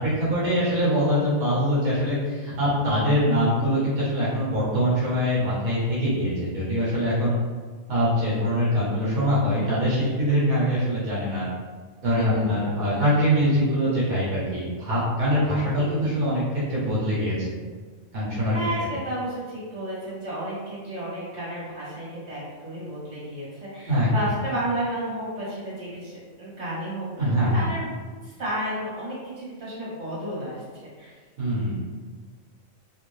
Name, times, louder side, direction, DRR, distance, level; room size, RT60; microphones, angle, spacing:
voice 1, 0.0-7.4 7.9-11.5 12.0-17.3 18.1-18.5 23.9-24.1 27.2-27.6 31.4-31.9, equal, 85° right, -9 dB, 1.5 m, -23 dB
voice 2, 12.0-13.0 15.7-16.1 18.5-27.9 28.2-31.1, right 1 dB, 55° right, -9 dB, 1.8 m, -32 dB
3.2 x 2.6 x 3.1 m, 1.5 s
omnidirectional pair, 1.4 m